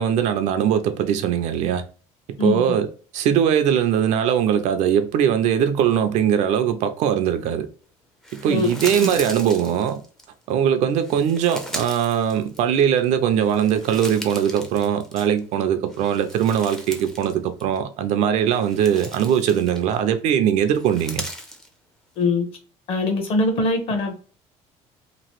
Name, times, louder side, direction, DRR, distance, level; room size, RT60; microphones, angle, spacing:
voice 1, 0.0-1.8 2.4-2.9 3.1-7.7 8.3-10.0 10.5-21.2, right 9 dB, 60° right, 0.5 m, -21 dB
sound 1, 8.2-10.3 11.0-13.0 13.4-15.5 15.9-17.3 17.6-17.8 18.4-20.1 20.8-21.7, equal, 5° left, 0.5 m, -37 dB
voice 2, 22.2-22.5 22.9-24.2, left 2 dB, 45° left, 0.9 m, -22 dB
3.0 x 2.5 x 2.9 m
cardioid pair, 155°, 13 cm